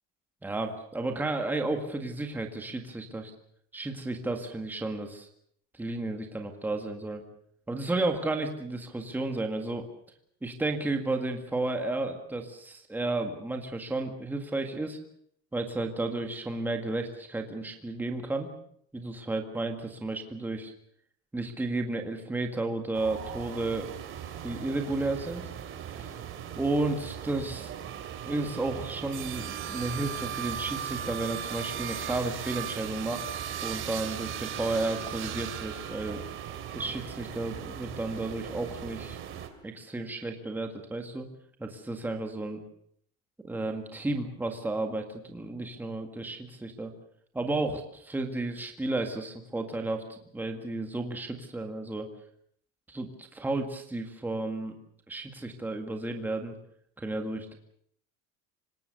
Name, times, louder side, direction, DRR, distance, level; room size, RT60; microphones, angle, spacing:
voice 1, 0.4-3.3 3.7-5.3 5.7-7.2 7.7-9.9 10.4-15.0 15.5-18.5 18.9-20.7 21.3-23.9 24.4-25.4 25.9-26.2 26.6-27.7 28.3-33.3 33.6-36.2 36.7-39.2 39.6-41.3 41.6-42.6 43.4-46.9 47.3-52.1 52.9-54.7 55.1-56.6 57.0-57.6, right 2 dB, 5° right, 4 dB, 1.8 m, -32 dB
sound 1, 22.9-39.5, right 9 dB, 35° right, 2.9 m, -38 dB
25.5 x 20.0 x 6.8 m, 0.67 s
cardioid pair, 165°, 35 cm